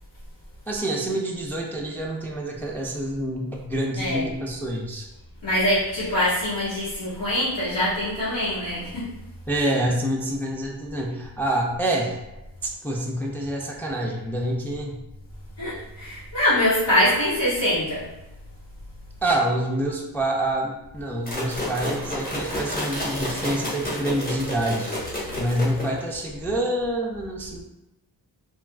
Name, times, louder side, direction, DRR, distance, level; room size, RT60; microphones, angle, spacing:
voice 1, 0.7-5.1 9.5-12.2 12.6-15.0 19.2-24.9 25.4-27.6, right 1 dB, 5° left, -1 dB, 0.3 m, -27 dB
voice 2, 3.9-4.3 5.4-9.1 15.6-18.1, left 1 dB, 75° left, -12 dB, 1.4 m, -23 dB
sound 1, 21.3-26.1, left 1 dB, 20° left, 1.0 m, -30 dB
3.4 x 2.4 x 2.2 m, 0.97 s
cardioid pair, 70°, 43 cm